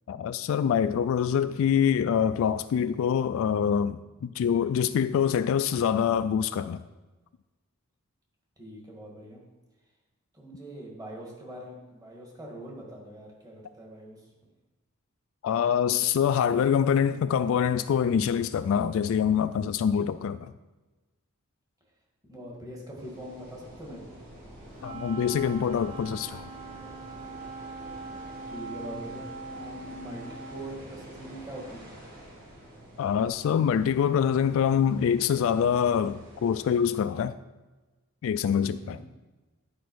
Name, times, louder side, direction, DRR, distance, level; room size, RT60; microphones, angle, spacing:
voice 1, 0.1-6.8 15.4-20.5 24.8-26.5 33.0-37.3 38.2-39.0, left 8 dB, 65° left, 0.3 m, -25 dB
voice 2, 8.6-9.4 10.3-14.2 22.2-24.2 28.5-31.9 38.6-39.0, right 1 dB, 20° right, 1.9 m, -43 dB
sound 1, 23.0-36.8, equal, 45° right, 3.0 m, -48 dB
Wind instrument woodwind instrument, 24.8-30.9, right 3 dB, 70° right, 2.0 m, -42 dB
10.0 x 5.1 x 4.7 m
head